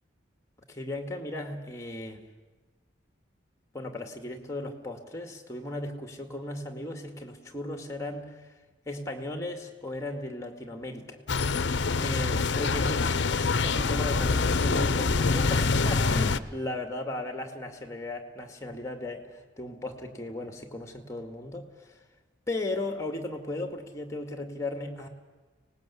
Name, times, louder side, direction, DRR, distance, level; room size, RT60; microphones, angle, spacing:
voice 1, 0.7-2.2 3.7-8.5 8.9-11.2 12.0-22.0 22.5-25.1, left 2 dB, 15° left, 5 dB, 2.1 m, -36 dB
sound 1, 11.3-16.4, left 4 dB, 65° left, 0.7 m, -25 dB
25.0 x 19.0 x 8.4 m, 1.3 s
head